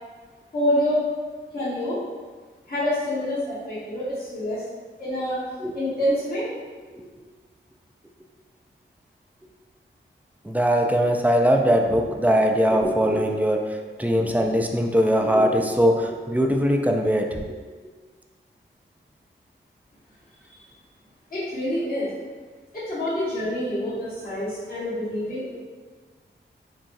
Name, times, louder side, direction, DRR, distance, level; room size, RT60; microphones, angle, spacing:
voice 1, 0.5-1.0 1.5-2.0 2.7-4.6 5.0-5.4 5.7-6.4 20.5-20.6 21.3-22.1 22.7-25.6, left 1 dB, 45° left, -12 dB, 1.4 m, -26 dB
voice 2, 10.4-17.6, equal, 10° right, 2 dB, 0.4 m, -21 dB
3.8 x 2.2 x 2.6 m, 1.4 s
cardioid pair, 50°, 21 cm